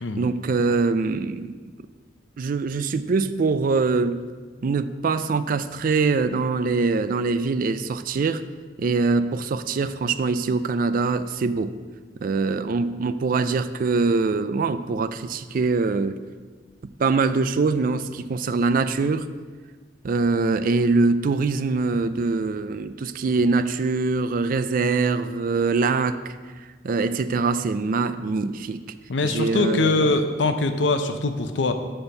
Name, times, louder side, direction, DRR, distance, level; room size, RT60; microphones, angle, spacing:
voice 1, 0.2-1.5 2.4-4.2 4.6-8.4 8.8-11.7 12.2-16.2 17.0-19.3 20.0-26.3 26.8-28.8 29.2-30.2, right 4 dB, 50° right, 12 dB, 0.4 m, -23 dB
voice 2, 29.1-31.7, left 3 dB, 85° left, 8 dB, 0.6 m, -22 dB
7.0 x 4.4 x 6.5 m, 1.4 s
head